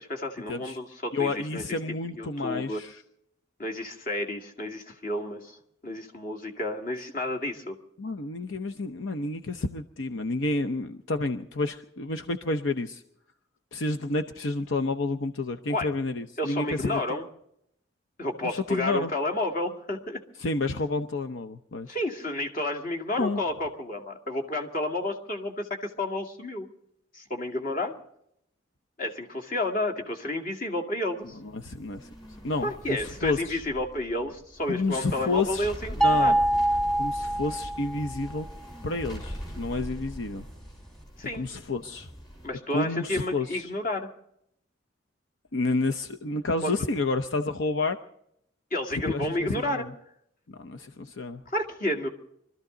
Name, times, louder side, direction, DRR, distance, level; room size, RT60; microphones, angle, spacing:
voice 1, 0.0-1.8 2.2-2.8 3.6-7.8 15.7-15.9 16.4-17.2 18.2-20.2 21.9-26.7 27.1-27.9 29.0-31.4 32.6-36.3 41.2-41.5 42.4-44.1 46.6-46.7 48.7-49.9 51.5-52.1, left 1 dB, 45° left, 3 dB, 2.2 m, -31 dB
voice 2, 1.1-3.0 8.0-13.0 13.7-17.0 18.4-19.1 20.4-21.9 23.2-23.4 31.5-32.1 32.4-33.6 34.7-35.7 36.0-36.4 37.0-38.5 38.8-40.4 41.3-42.1 42.7-43.7 45.5-48.0 49.1-49.9 50.5-51.4, left 3 dB, 75° left, 6 dB, 0.8 m, -30 dB
sound 1, 31.2-42.5, equal, 20° left, 5.4 m, -42 dB
sound 2, 36.0-38.2, right 1 dB, 5° left, 1.4 m, -24 dB
24.5 x 13.5 x 3.9 m, 0.73 s
head